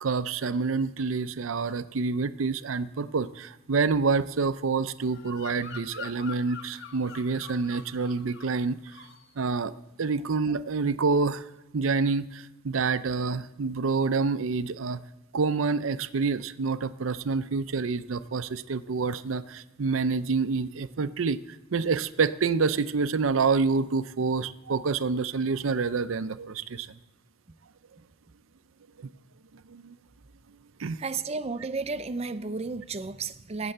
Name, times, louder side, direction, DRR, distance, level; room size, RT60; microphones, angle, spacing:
voice 1, 0.0-8.8 9.4-9.7 10.0-11.4 11.7-15.0 15.3-21.4 21.7-26.9 29.0-29.1 29.7-30.0 30.8-31.0, right 4 dB, 85° right, 14 dB, 0.6 m, -27 dB
Bird vocalization bird call bird song, 5.1-8.6 8.9-9.3, left 6 dB, 60° left, 1.1 m, -44 dB
voice 2, 31.0-33.7, right 4 dB, 30° right, 13 dB, 0.5 m, -33 dB
18.0 x 7.6 x 7.8 m, 0.95 s
head